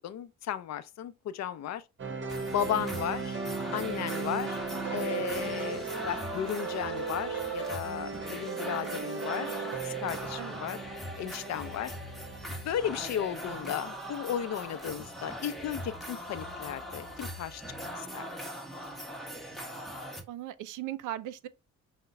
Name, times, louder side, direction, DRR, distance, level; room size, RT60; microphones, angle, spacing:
voice 1, 0.0-1.8 2.5-3.4 3.7-4.6 4.9-10.8 11.2-11.9 12.6-17.6 18.0-18.3, left 10 dB, 60° left, 0.5 m, -35 dB
sound 1, 2.0-14.1, right 5 dB, 40° right, 1.2 m, -37 dB
sound 2, 2.3-20.2, equal, ahead, 1.1 m, -41 dB
voice 2, 20.3-21.5, right 13 dB, 85° right, 0.5 m, -38 dB
5.7 x 2.1 x 3.9 m
cardioid pair, 90°, 30 cm